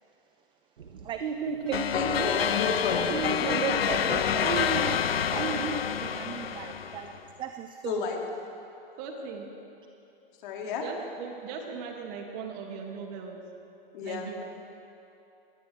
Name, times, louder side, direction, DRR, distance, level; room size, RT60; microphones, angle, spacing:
sound 1, 0.8-5.8, right 5 dB, 80° right, 1.4 m, -33 dB
sound 2, 1.7-7.2, left 8 dB, 85° left, 0.7 m, -28 dB
voice 1, 1.9-3.5 7.9-8.2 10.4-10.8 13.9-14.3, left 5 dB, 60° left, 1 dB, 2.4 m, -32 dB
voice 2, 3.4-4.7 5.3-7.1 7.4-8.0, right 9 dB, 15° right, 7 dB, 0.4 m, -37 dB
voice 3, 9.0-9.5 10.8-13.4 14.0-14.4, right 5 dB, 45° right, 2 dB, 2.3 m, -39 dB
20.0 x 16.0 x 3.4 m, 2.8 s
hypercardioid pair, 115°, 29 cm